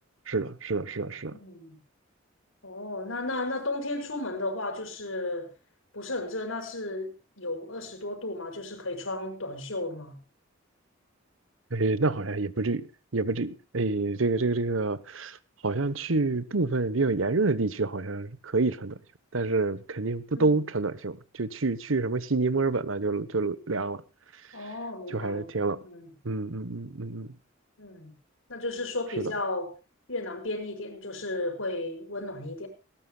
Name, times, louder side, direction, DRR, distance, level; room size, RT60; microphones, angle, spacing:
voice 1, 0.3-1.4 11.7-12.9 13.1-15.4 15.6-19.0 19.3-24.0 25.1-25.8 26.2-27.3 29.2-29.3, right 3 dB, 80° right, 1.1 m, -28 dB
voice 2, 1.0-1.8 2.6-5.5 5.9-10.1 20.3-20.6 24.5-25.5 25.8-26.1 27.8-28.1 28.5-29.7 30.1-32.7, left 2 dB, 85° left, 5.4 m, -34 dB
19.0 x 18.0 x 2.3 m
head